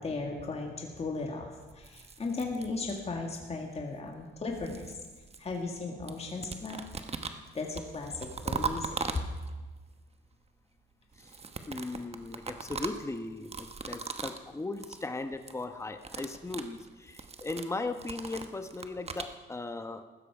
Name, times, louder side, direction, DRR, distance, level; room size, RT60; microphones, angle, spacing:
voice 1, 0.0-5.0 5.4-6.8 7.2-9.2, left 3 dB, 30° left, 1 dB, 2.1 m, -36 dB
sound 1, 1.7-3.3 4.2-5.8 6.1-9.7 11.1-14.5 14.7-15.1 15.3-15.6 15.9-19.3, right 4 dB, 30° right, 1.1 m, -40 dB
voice 2, 11.7-20.0, left 2 dB, 15° left, 7 dB, 1.0 m, -38 dB
16.0 x 12.5 x 4.9 m, 1.3 s
cardioid pair, 90°, 20 cm